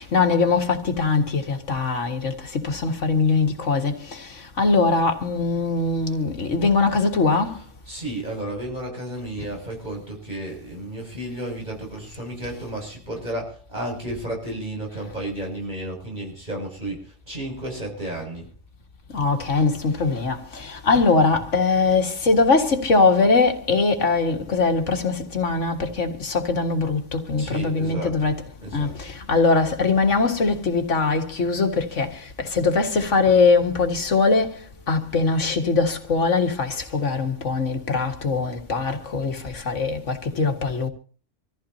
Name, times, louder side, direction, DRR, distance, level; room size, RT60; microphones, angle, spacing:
voice 1, 0.0-2.3 2.6-3.9 4.6-7.6 19.1-28.4 28.7-32.1 32.4-34.5 34.9-40.9, left 4 dB, 85° left, 2.1 m, -21 dB
voice 2, 7.5-18.5 27.3-28.3 28.6-29.0, right 1 dB, 40° right, 7.2 m, -33 dB
26.5 x 15.0 x 2.8 m
omnidirectional pair, 1.2 m